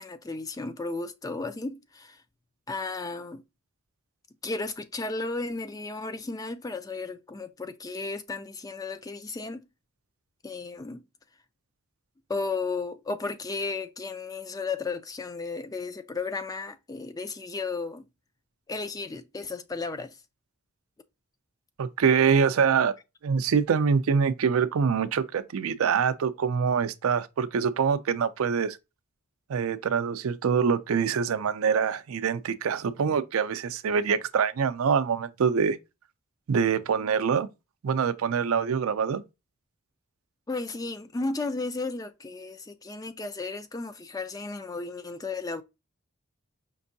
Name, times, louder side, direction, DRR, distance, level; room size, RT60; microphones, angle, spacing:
voice 1, 0.0-2.2 2.7-3.4 4.4-9.6 10.4-11.0 12.3-18.0 18.7-20.1 40.5-45.6, left 3 dB, 15° left, 0.3 m, -34 dB
voice 2, 21.8-22.9 23.2-28.8 29.5-35.8 36.5-37.5 37.8-39.2, right 6 dB, 75° right, 0.4 m, -25 dB
5.2 x 2.6 x 2.6 m
head